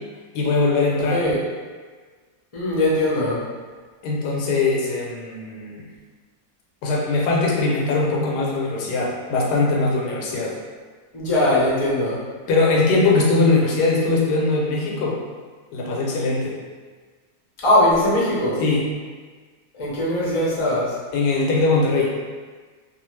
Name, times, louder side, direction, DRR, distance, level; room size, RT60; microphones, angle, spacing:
voice 1, 0.3-1.2 4.0-5.8 6.8-10.6 12.5-15.2 15.7-16.6 18.6-18.8 21.1-22.1, left 3 dB, 85° left, -2 dB, 1.2 m, -21 dB
voice 2, 1.0-1.4 2.5-3.4 11.1-12.3 17.6-18.6 19.7-21.0, left 1 dB, 40° left, -7 dB, 0.4 m, -20 dB
2.7 x 2.4 x 3.1 m, 1.5 s
omnidirectional pair, 1.7 m